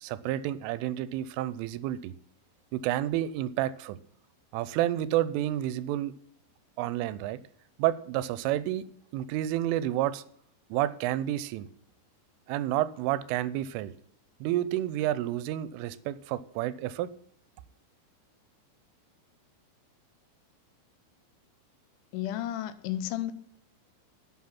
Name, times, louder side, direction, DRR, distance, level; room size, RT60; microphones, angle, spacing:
voice 1, 0.0-2.1 2.7-4.0 4.5-6.1 6.8-7.4 7.8-8.8 9.1-10.2 10.7-11.7 12.5-13.9 14.4-17.1, right 13 dB, 90° right, 16 dB, 3.1 m, -30 dB
voice 2, 22.1-23.3, left 12 dB, 80° left, 12 dB, 3.2 m, -32 dB
12.0 x 8.0 x 5.9 m, 0.67 s
omnidirectional pair, 5.6 m